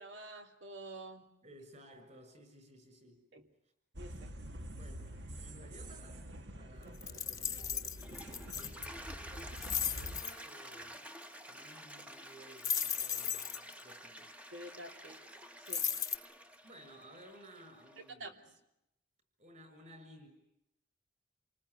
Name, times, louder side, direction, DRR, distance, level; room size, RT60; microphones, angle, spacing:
voice 1, 0.0-1.3 3.3-3.4 4.0-4.3 14.5-15.2 15.6-15.9 18.0-18.3, right 2 dB, 85° right, 5 dB, 3.0 m, -48 dB
voice 2, 1.4-3.3 4.7-11.1 11.5-14.4 16.6-18.6 19.4-20.3, equal, 40° right, 8 dB, 6.6 m, -57 dB
sound 1, 3.9-10.2, equal, 65° right, 1.6 m, -47 dB
sound 2, 7.0-8.9 9.4-10.3 12.6-13.7 15.7-16.2, left 8 dB, 20° left, 1.1 m, -36 dB
Toilet flush, 7.8-18.1, equal, 5° right, 1.0 m, -51 dB
28.0 x 19.5 x 9.6 m, 0.85 s
head